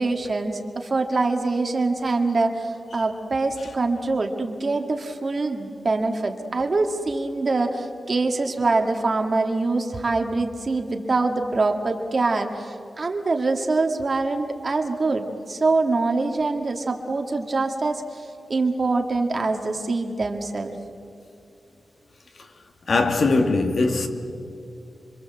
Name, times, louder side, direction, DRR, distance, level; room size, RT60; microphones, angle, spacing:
voice 1, 0.0-20.8, right 3 dB, 35° right, 2.0 m, -24 dB
voice 2, 22.9-24.1, left 3 dB, 50° left, 2.2 m, -20 dB
27.0 x 24.5 x 7.8 m
wide cardioid pair, 170°, 0 cm